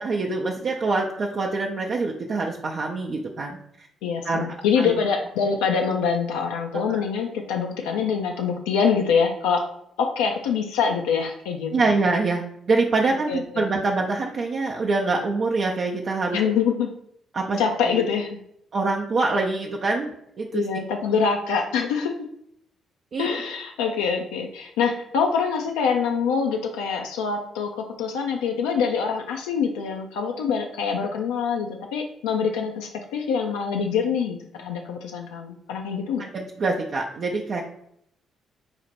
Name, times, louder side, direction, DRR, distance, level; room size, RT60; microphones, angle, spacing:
voice 1, 0.0-3.9 4.2-4.5 4.8-4.9 6.9-7.0 11.7-16.4 17.3-17.6 17.9-18.0 18.7-20.6 23.1-23.3 36.3-37.6, right 3 dB, 55° right, -1 dB, 0.4 m, -25 dB
voice 2, 4.0-9.7 10.0-11.8 13.3-13.7 16.3-16.9 17.6-18.4 20.5-22.3 23.2-36.3, left 6 dB, 75° left, 2 dB, 0.3 m, -25 dB
4.1 x 2.1 x 4.1 m, 0.72 s
hypercardioid pair, 45°, 0 cm